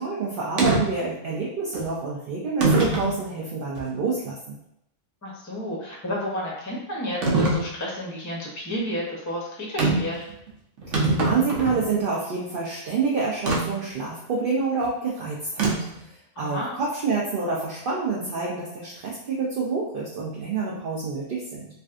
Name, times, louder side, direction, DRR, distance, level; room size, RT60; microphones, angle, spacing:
voice 1, 0.0-4.6 10.9-15.7 16.1-21.7, right 4 dB, 55° right, -4 dB, 0.6 m, -28 dB
sound 1, 0.6-0.8 1.7-1.9 2.6-3.1 3.8-3.9 7.2-7.6 9.8-10.1 10.5-10.6 10.8-11.9 13.5-13.6 15.6-16.0, right 2 dB, 75° right, 1.0 m, -22 dB
voice 2, 5.2-10.3 16.4-16.8, equal, 20° left, -4 dB, 0.6 m, -31 dB
3.2 x 2.5 x 2.4 m, 0.77 s
omnidirectional pair, 1.3 m